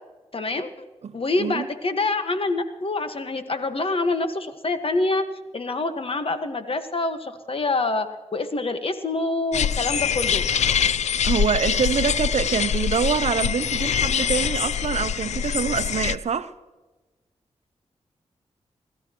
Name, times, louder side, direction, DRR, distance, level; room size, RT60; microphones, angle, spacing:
voice 1, 0.3-0.7 1.1-5.2 5.5-10.4, left 2 dB, 50° left, 1.5 m, -26 dB
voice 2, 1.0-1.7 11.2-16.5, right 6 dB, 65° right, 0.8 m, -25 dB
sound 1, 9.5-16.2, left 8 dB, 70° left, 0.4 m, -24 dB
28.5 x 13.0 x 3.0 m
cardioid pair, 60°, 12 cm